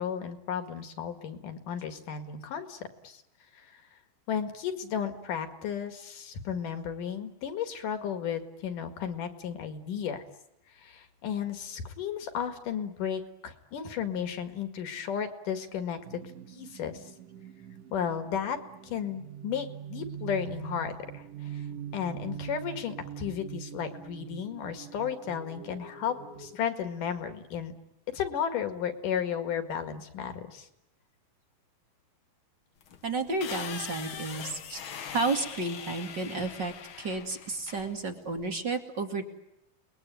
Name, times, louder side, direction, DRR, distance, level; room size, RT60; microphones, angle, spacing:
voice 1, 0.0-3.2 3.5-3.8 4.3-10.2 10.8-16.2 16.5-17.1 17.9-18.6 18.8-21.7 21.9-27.7 28.1-30.7, left 8 dB, 60° left, 8 dB, 3.4 m, -34 dB
sound 1, 16.0-26.6, right 9 dB, 65° right, 3.2 m, -43 dB
sound 2, 32.8-38.5, left 7 dB, 75° left, 1.1 m, -42 dB
voice 2, 33.0-34.8 35.1-39.2, right 3 dB, 35° right, 5 dB, 2.4 m, -32 dB
30.0 x 21.0 x 9.2 m, 0.87 s
omnidirectional pair, 4.4 m